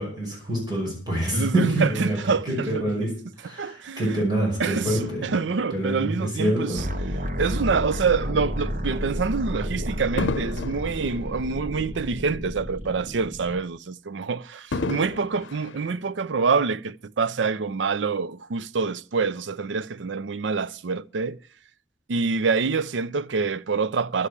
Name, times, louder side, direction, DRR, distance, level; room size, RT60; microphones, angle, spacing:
voice 1, 0.0-2.2 2.5-5.3 5.7-6.9, right 1 dB, 20° right, 5.5 m, -26 dB
voice 2, 1.3-3.1 3.6-4.2 4.6-6.8 7.4-21.4 22.1-24.3, right 5 dB, 75° right, 0.5 m, -26 dB
Fireworks, 4.8-7.4 8.1-8.3 10.2-12.7 13.1-13.2 14.7-16.6 17.3-17.4, left 3 dB, 85° left, 0.7 m, -35 dB
sound 1, 6.8-13.6, equal, 45° right, 1.4 m, -31 dB
11.5 x 8.2 x 8.4 m
head